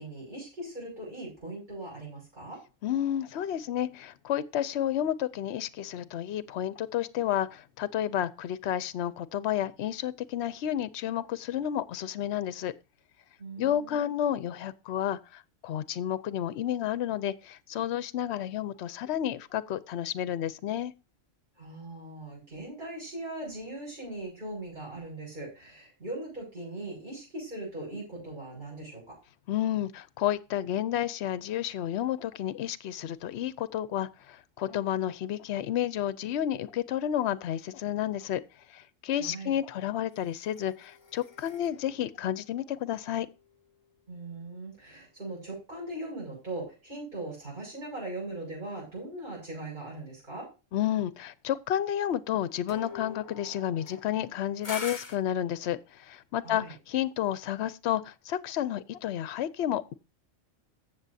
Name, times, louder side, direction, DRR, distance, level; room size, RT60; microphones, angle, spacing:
voice 1, 0.0-2.6 13.4-14.1 21.6-29.0 39.2-39.5 44.1-50.5 56.4-56.7, right 2 dB, 40° right, 6.7 m, -40 dB
voice 2, 2.8-12.7 13.6-20.9 29.5-38.4 38.7-43.3 50.7-59.9, left 11 dB, 65° left, 0.9 m, -31 dB
sound 1, 40.1-43.6 52.7-55.2, left 4 dB, 40° left, 1.4 m, -44 dB
15.5 x 7.0 x 2.7 m
omnidirectional pair, 1.3 m